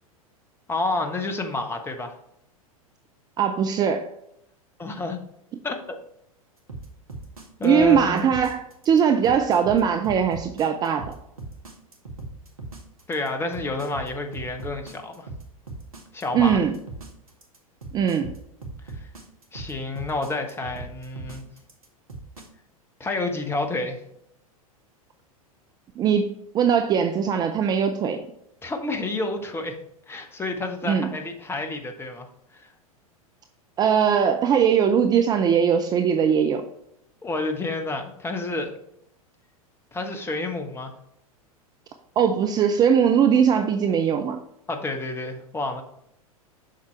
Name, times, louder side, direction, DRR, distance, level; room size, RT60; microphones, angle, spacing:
voice 1, 0.7-2.1 4.8-5.2 5.6-6.0 7.6-8.3 13.1-15.3 16.1-16.6 18.8-19.1 19.5-21.5 23.0-24.0 28.6-29.8 30.1-32.3 32.5-32.7 37.2-38.7 39.9-40.9 44.7-45.8, left 2 dB, 10° left, 5 dB, 1.0 m, -29 dB
voice 2, 3.4-4.1 7.6-11.1 16.3-16.7 17.9-18.4 26.0-28.3 30.8-31.1 33.8-36.6 42.2-44.4, right 7 dB, 20° right, 6 dB, 0.5 m, -20 dB
sound 1, 6.7-22.5, right 3 dB, 70° right, 1.6 m, -39 dB
7.5 x 5.8 x 3.2 m, 0.77 s
figure-of-eight pair, 90°, 19 cm